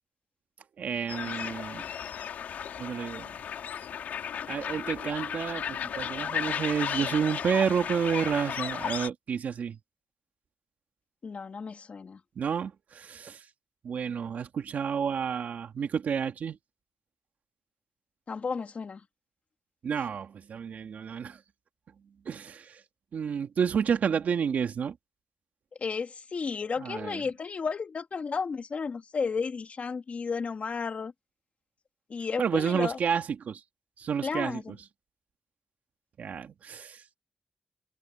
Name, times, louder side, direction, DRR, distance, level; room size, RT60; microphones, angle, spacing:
voice 1, 0.8-1.8 2.8-3.3 4.5-9.8 12.4-13.4 13.8-16.6 19.8-21.4 22.3-22.8 23.1-25.0 26.8-27.2 32.4-33.6 34.0-34.6 36.2-37.0, right 7 dB, 75° right, 2.3 m, -30 dB
sound 1, 1.1-9.1, left 8 dB, 90° left, 3.6 m, -34 dB
voice 2, 11.2-12.2 18.3-19.0 20.0-20.1 25.8-31.1 32.1-33.0 34.2-34.8, left 5 dB, 55° left, 2.8 m, -33 dB
cardioid pair, 70°, 3 cm